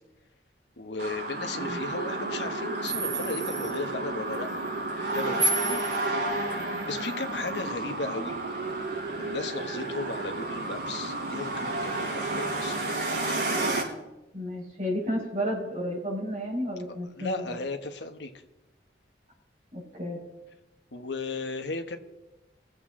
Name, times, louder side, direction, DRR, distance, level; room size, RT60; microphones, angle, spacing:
voice 1, 0.8-4.5 5.1-5.8 6.8-8.4 9.2-12.8 17.2-18.3 20.9-22.0, left 3 dB, 80° left, 7 dB, 1.2 m, -35 dB
sound 1, 1.0-13.8, right 2 dB, 75° right, 4.1 m, -31 dB
voice 2, 14.3-17.6 19.7-20.2, equal, 40° right, -5 dB, 5.4 m, -32 dB
22.5 x 7.9 x 3.7 m, 1.0 s
head